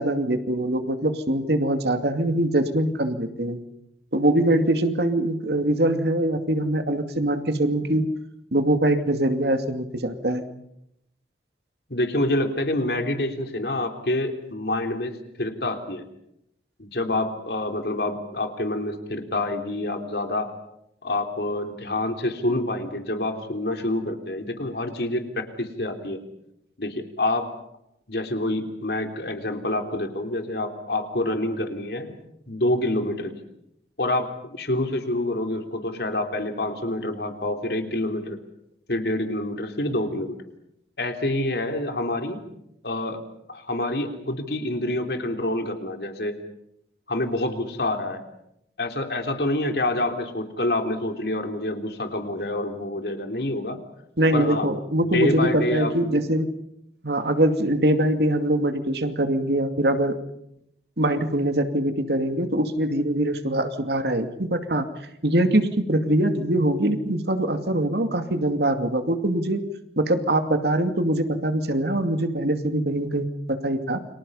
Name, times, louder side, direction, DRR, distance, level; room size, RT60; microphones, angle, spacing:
voice 1, 0.0-3.6 4.1-8.1 8.5-10.4 54.2-56.5 57.0-60.2 61.0-64.9 65.2-69.6 70.0-74.0, right 1 dB, 65° right, 7 dB, 2.4 m, -23 dB
voice 2, 11.9-16.0 16.8-20.5 21.0-26.2 26.8-27.5 28.1-32.1 32.5-33.3 34.0-38.4 38.9-40.4 41.0-42.4 42.8-43.2 43.5-46.3 47.1-48.2 48.8-53.8 54.3-54.7 55.1-55.9, left 1 dB, 65° left, 5 dB, 3.4 m, -27 dB
29.5 x 24.5 x 5.6 m, 0.78 s
head